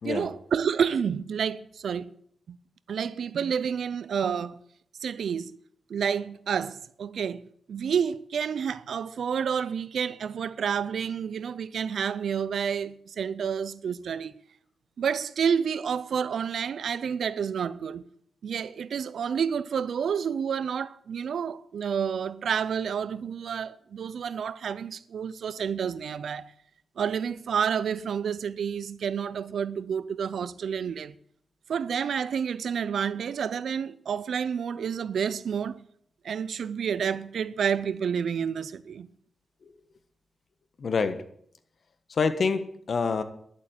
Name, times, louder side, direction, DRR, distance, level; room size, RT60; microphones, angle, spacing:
voice 1, 0.0-2.1 2.5-2.6 2.9-4.6 5.0-5.6 5.9-14.3 15.0-18.0 18.4-26.5 27.0-31.1 31.7-35.9 36.2-39.1, right 7 dB, 75° right, 0.6 m, -29 dB
voice 2, 40.8-41.2 42.1-43.2, left 5 dB, 55° left, 1.3 m, -27 dB
11.0 x 8.4 x 9.1 m
wide cardioid pair, 130°, 0 cm